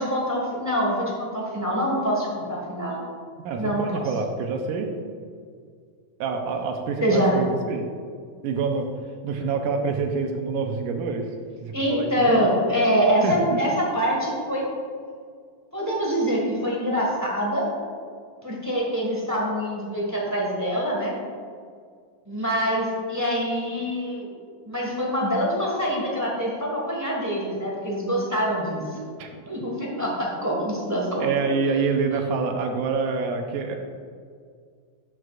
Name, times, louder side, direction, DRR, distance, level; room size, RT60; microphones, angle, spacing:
voice 1, 0.0-3.0 3.6-4.0 7.0-7.4 11.7-14.6 15.7-17.7 18.4-21.1 22.3-24.3 24.6-29.0 29.5-31.3, equal, 15° right, -4 dB, 0.7 m, -25 dB
voice 2, 3.4-4.9 6.2-7.8 8.4-8.9 9.2-11.3 11.6-12.5 13.2-13.6 29.2-29.3 31.2-33.8, right 4 dB, 90° right, 3 dB, 2.2 m, -26 dB
12.5 x 7.9 x 2.5 m, 2.1 s
omnidirectional pair, 3.5 m